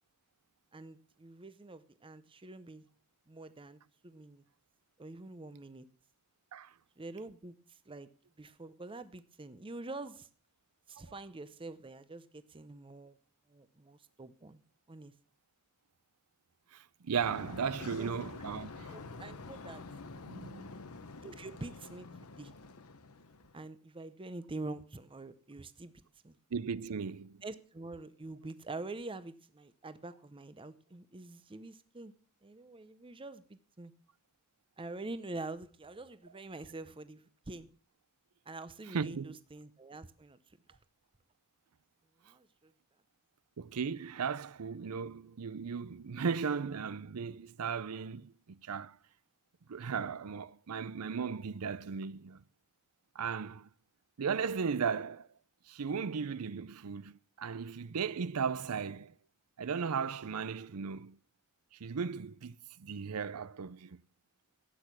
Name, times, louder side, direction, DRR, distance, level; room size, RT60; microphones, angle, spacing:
voice 1, 0.7-2.9 3.3-4.4 5.0-5.9 7.0-8.1 8.4-10.3 10.9-13.2 13.5-14.6 14.9-15.1 17.8-18.1 18.9-19.9 21.2-22.1 22.4-22.5 23.5-25.9 26.2-26.4 27.4-32.1 32.4-33.9 34.8-37.7 38.5-40.8 42.2-42.7, right 2 dB, 25° right, 0.7 m, -46 dB
voice 2, 16.7-19.0 20.3-20.7 26.5-27.4 38.9-39.4 43.6-49.0 49.7-52.4 53.1-53.7 54.2-55.3 55.7-59.1 59.6-61.2 61.8-64.0, right 6 dB, 80° right, 0.6 m, -36 dB
sound 1, 17.2-23.6, left 3 dB, 75° left, 1.0 m, -47 dB
12.5 x 8.8 x 6.1 m
head